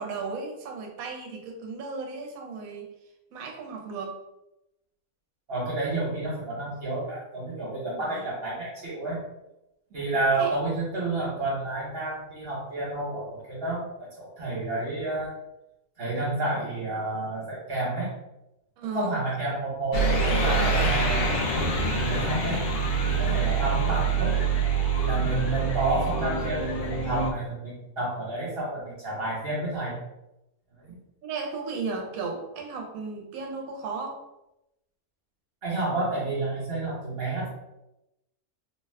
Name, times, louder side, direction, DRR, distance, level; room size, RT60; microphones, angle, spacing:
voice 1, 0.0-2.9 3.3-4.2 7.8-8.3 9.9-10.1 10.4-10.5 18.8-19.2 23.6-23.7 30.8-30.9 31.2-34.2, right 4 dB, 75° right, 2 dB, 1.0 m, -35 dB
voice 2, 5.5-9.2 9.9-15.3 16.0-18.1 18.9-22.6 23.1-24.4 25.0-30.0 30.7-31.0 35.6-37.5, right 2 dB, 45° right, -6 dB, 1.1 m, -30 dB
sound 1, 19.9-27.3, right 4 dB, 85° left, 1.2 m, -25 dB
2.8 x 2.2 x 3.3 m, 0.91 s
omnidirectional pair, 1.5 m